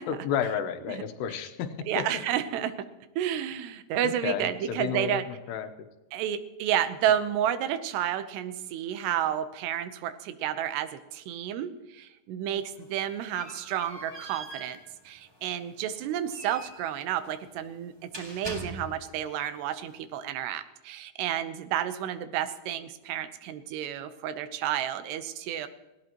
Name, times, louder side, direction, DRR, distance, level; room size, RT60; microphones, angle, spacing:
voice 1, 0.1-2.1 4.0-5.7, left 8 dB, 90° left, 8 dB, 3.2 m, -32 dB
voice 2, 1.9-2.7 3.2-5.2 6.1-14.8 15.1-25.7, right 10 dB, 85° right, 11 dB, 3.0 m, -31 dB
sound 1, 12.6-19.2, right 1 dB, 5° right, 2.4 m, -44 dB
19.0 x 17.5 x 3.0 m, 1.1 s
omnidirectional pair, 4.7 m